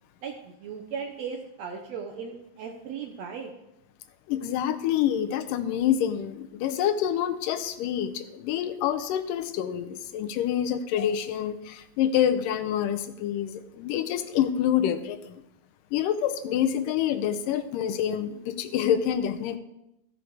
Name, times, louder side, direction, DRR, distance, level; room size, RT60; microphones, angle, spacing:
voice 1, 0.2-3.5, right 6 dB, 70° right, 3 dB, 1.6 m, -37 dB
voice 2, 4.3-15.4 15.9-19.6, left 10 dB, 85° left, 9 dB, 2.3 m, -27 dB
14.5 x 6.5 x 4.6 m, 0.86 s
omnidirectional pair, 3.9 m